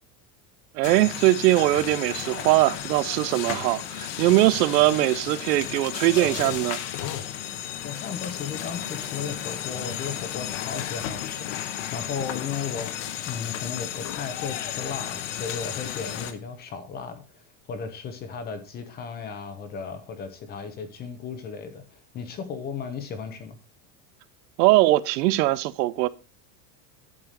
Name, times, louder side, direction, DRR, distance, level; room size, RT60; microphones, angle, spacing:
voice 1, 0.7-6.8 24.6-26.1, right 18 dB, 90° right, 0.8 m, -21 dB
sound 1, 0.8-16.3, left 11 dB, 50° left, 1.1 m, -33 dB
voice 2, 7.8-12.9 13.2-23.6, left 6 dB, 20° left, 0.9 m, -35 dB
11.0 x 4.8 x 5.1 m
cardioid pair, 180°, 47 cm